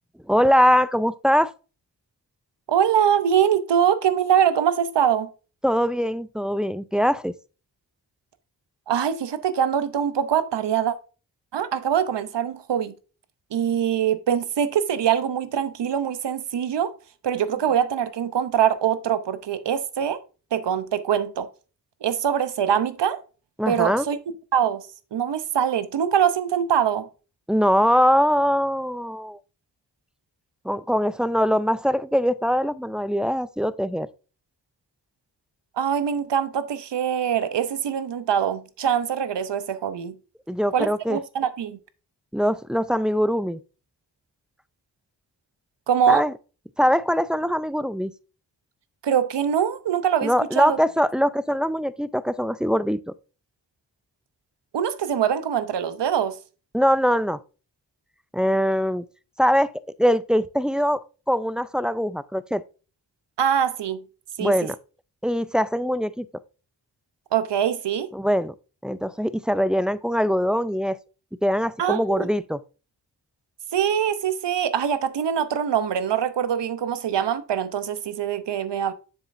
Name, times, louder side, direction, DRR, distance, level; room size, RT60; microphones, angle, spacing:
voice 1, 0.3-1.5 5.6-7.3 23.6-24.1 27.5-29.4 30.6-34.1 40.5-41.2 42.3-43.6 46.1-46.3 46.8-48.1 50.2-53.0 56.7-57.4 58.3-59.0 59.4-59.7 60.0-62.6 64.4-64.8 65.2-66.3 68.1-68.5 68.8-71.0 71.4-72.6, equal, ahead, 0.3 m, -22 dB
voice 2, 2.7-5.3 8.9-10.9 11.5-12.9 13.5-16.9 17.2-20.2 20.5-21.5 22.0-23.2 23.7-24.2 24.5-27.1 35.8-40.2 40.7-41.8 45.9-46.2 49.0-50.8 54.7-56.4 63.4-64.0 64.4-64.7 67.3-68.1 71.8-72.3 73.7-78.9, right 8 dB, 80° right, 0.8 m, -23 dB
7.2 x 6.8 x 2.6 m
cardioid pair, 55°, 42 cm